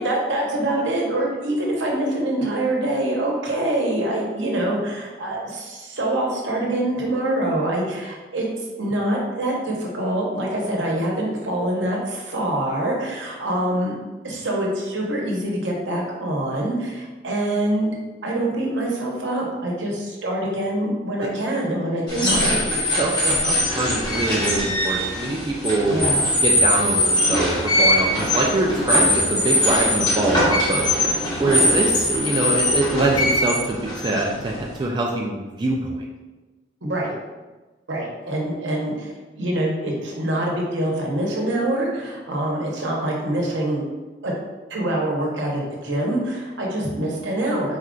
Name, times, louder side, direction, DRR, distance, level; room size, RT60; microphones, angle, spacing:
voice 1, 0.0-8.5 8.8-13.9 14.2-17.9 18.2-22.9 25.9-26.3 31.4-31.8 36.8-37.1 37.9-43.8 44.2-44.3 44.7-47.8, right 1 dB, 75° right, -2 dB, 0.9 m, -25 dB
sound 1, 22.1-34.8, left 1 dB, 25° left, 1.1 m, -21 dB
voice 2, 22.2-26.1 26.4-30.9 31.4-36.1, right 2 dB, 25° right, -2 dB, 0.4 m, -24 dB
4.2 x 2.4 x 3.7 m, 1.2 s
head